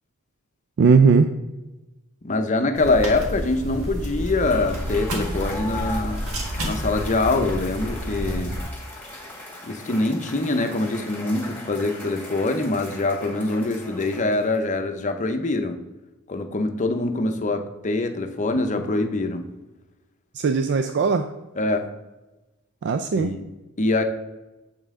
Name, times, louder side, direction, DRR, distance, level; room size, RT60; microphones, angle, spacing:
voice 1, 0.8-1.3 20.3-21.3 22.8-23.3, right 5 dB, 55° right, 9 dB, 0.3 m, -18 dB
voice 2, 2.2-6.2 6.6-8.6 9.6-15.8 16.3-19.4 21.6-21.8 23.1-23.4 23.8-24.0, left 2 dB, 35° left, 7 dB, 0.6 m, -24 dB
sound 1, 2.7-8.6, equal, 75° right, 1.6 m, -30 dB
Cheering / Applause / Crowd, 4.3-14.7, left 2 dB, 10° left, 1.7 m, -39 dB
7.4 x 5.4 x 3.6 m, 1.1 s
head